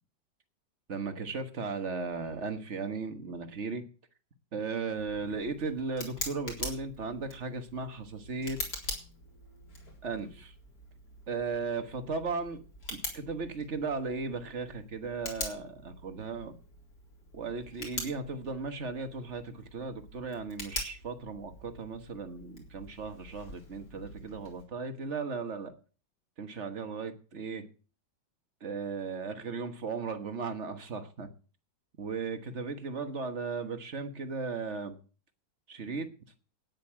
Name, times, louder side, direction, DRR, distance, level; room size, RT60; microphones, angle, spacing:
voice 1, 0.9-3.8 4.5-8.6 10.0-10.5 11.3-12.6 12.9-16.5 17.3-25.7 26.4-27.6 28.6-31.3 32.0-34.9 35.7-36.1, right 4 dB, 40° right, 8 dB, 1.5 m, -36 dB
Tick, 5.0-24.6, left 2 dB, 50° left, 4.4 m, -44 dB
9.8 x 9.2 x 7.4 m, 0.38 s
omnidirectional pair, 2.1 m